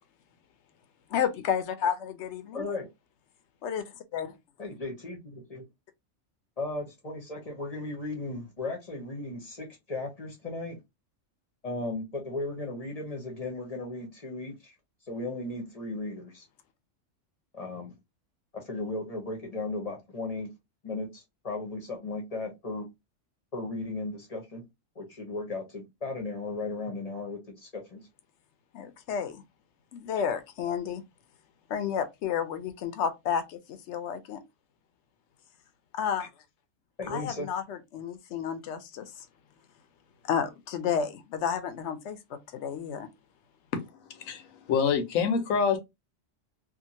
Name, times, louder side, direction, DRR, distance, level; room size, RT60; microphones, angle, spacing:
voice 1, 1.1-2.6 3.6-3.8 4.1-4.3 28.7-29.4 29.9-31.0 31.7-34.4 35.9-36.3 37.1-39.1 40.3-43.1, left 8 dB, 65° left, 0.8 m, -31 dB
voice 2, 2.5-2.9 4.6-5.6 6.6-10.8 11.6-14.7 15.1-16.4 17.5-17.9 18.5-20.5 20.8-22.9 23.5-24.6 25.0-28.0 37.0-37.5, left 2 dB, 35° left, 0.7 m, -36 dB
voice 3, 44.1-45.8, left 6 dB, 90° left, 1.1 m, -26 dB
2.7 x 2.5 x 2.7 m
omnidirectional pair, 1.4 m